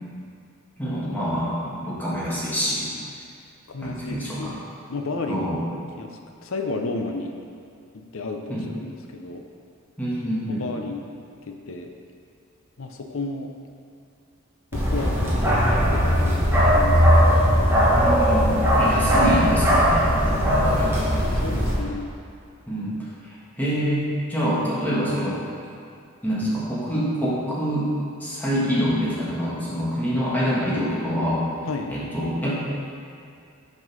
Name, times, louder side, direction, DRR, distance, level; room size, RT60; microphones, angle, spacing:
voice 1, 0.8-2.9 3.8-4.6 5.3-5.6 8.5-8.7 10.0-10.7 17.9-21.1 22.7-23.0 23.6-25.4 26.2-27.9 28.2-31.4 31.9-32.5, equal, 10° left, -8 dB, 1.5 m, -26 dB
voice 2, 3.7-5.5 6.0-6.1 6.4-7.3 7.9-9.4 10.6-11.9 12.8-13.5 14.7-17.3 21.4-22.1 31.7-32.0, left 3 dB, 65° left, 4 dB, 0.7 m, -33 dB
Bark, 14.7-21.8, equal, 10° right, 1.2 m, -19 dB
6.5 x 5.3 x 5.3 m, 2.4 s
head